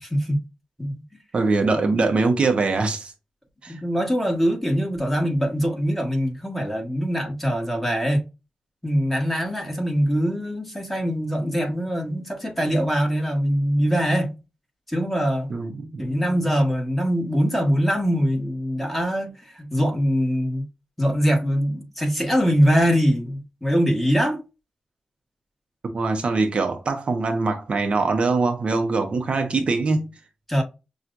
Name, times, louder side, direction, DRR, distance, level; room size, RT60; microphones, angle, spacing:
voice 1, 0.0-0.4 0.8-1.0 3.7-8.3 8.8-14.4 14.9-15.5 16.0-20.6 21.0-24.4 30.5-30.6, equal, 5° left, 1.5 m, -23 dB
voice 2, 1.3-3.1 3.6-3.8 15.5-16.1 25.9-30.1, right 3 dB, 55° right, 0.7 m, -23 dB
5.9 x 2.4 x 2.5 m
wide cardioid pair, 105°, 2 cm